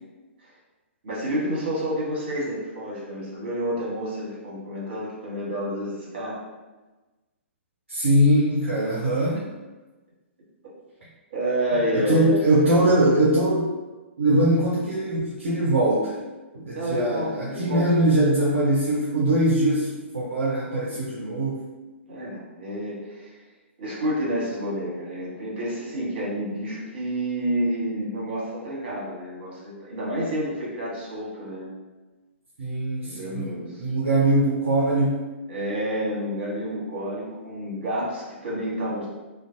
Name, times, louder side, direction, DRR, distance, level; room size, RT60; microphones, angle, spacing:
voice 1, 1.0-6.4 11.3-12.4 12.8-12.9 16.7-17.9 22.1-23.4 23.8-31.7 33.0-33.9 35.5-39.1, equal, 50° right, -6 dB, 1.1 m, -29 dB
voice 2, 7.9-9.5 11.9-13.7 14.2-16.1 16.5-21.6 32.6-35.2, right 1 dB, 65° right, -5 dB, 0.5 m, -22 dB
2.5 x 2.2 x 2.5 m, 1.2 s
figure-of-eight pair, 115°, 7 cm